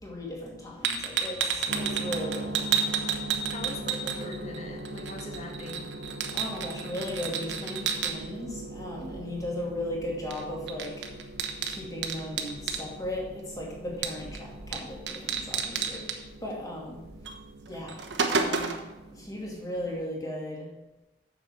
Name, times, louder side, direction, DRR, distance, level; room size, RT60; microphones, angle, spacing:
voice 1, 0.0-2.8 6.3-11.1 11.7-17.0 17.7-18.8 19.1-20.7, left 1 dB, 20° left, -2 dB, 2.4 m, -37 dB
sound 1, 0.8-4.6 4.9-8.1 10.3-10.4 10.7-12.8 14.0-14.4 14.7-14.8 15.1-16.2 17.3-17.4 17.7-18.9, right 6 dB, 75° right, 1.1 m, -30 dB
sound 2, 1.7-20.0, right 2 dB, 60° right, 1.0 m, -41 dB
voice 2, 3.5-5.9, left 2 dB, 35° left, 1 dB, 1.8 m, -40 dB
7.6 x 6.8 x 7.2 m, 1.0 s
head